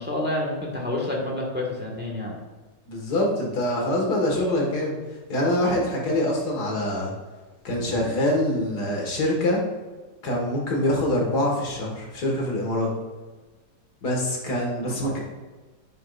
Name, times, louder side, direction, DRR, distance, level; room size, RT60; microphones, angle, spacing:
voice 1, 0.0-2.3 14.8-15.1, left 1 dB, 5° right, -2 dB, 1.3 m, -29 dB
voice 2, 2.9-4.9 5.3-7.1 7.6-9.6 10.2-12.9 14.0-15.2, left 1 dB, 60° left, -1 dB, 2.2 m, -24 dB
9.6 x 6.9 x 2.4 m, 1.3 s
omnidirectional pair, 2.0 m